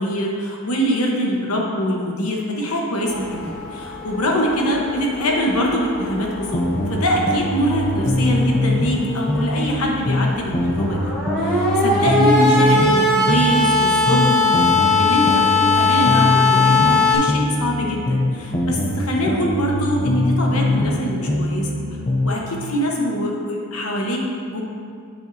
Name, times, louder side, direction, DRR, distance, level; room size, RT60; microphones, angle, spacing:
voice 1, 0.0-11.1 11.4-21.7 22.2-24.6, equal, 85° left, -1 dB, 1.2 m, -23 dB
sound 1, 3.0-17.2, left 3 dB, 5° left, 1.6 m, -21 dB
sound 2, 6.5-9.0 9.3-13.0 13.3-17.0 17.3-21.0 21.3-22.4, left 1 dB, 25° left, 0.6 m, -22 dB
8.3 x 7.3 x 2.7 m, 2.3 s
head